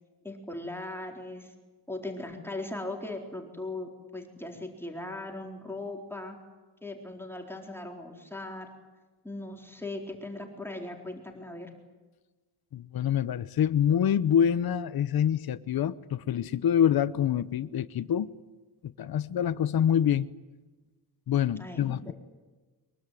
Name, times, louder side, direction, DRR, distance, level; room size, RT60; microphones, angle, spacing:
voice 1, 0.2-1.5 1.9-6.4 6.8-8.7 9.2-11.7 21.6-22.1, left 2 dB, 5° left, 4.2 m, -39 dB
voice 2, 12.7-18.3 18.8-20.3 21.3-22.1, left 9 dB, 65° left, 1.0 m, -26 dB
24.0 x 23.0 x 9.3 m
wide cardioid pair, 135°, 39 cm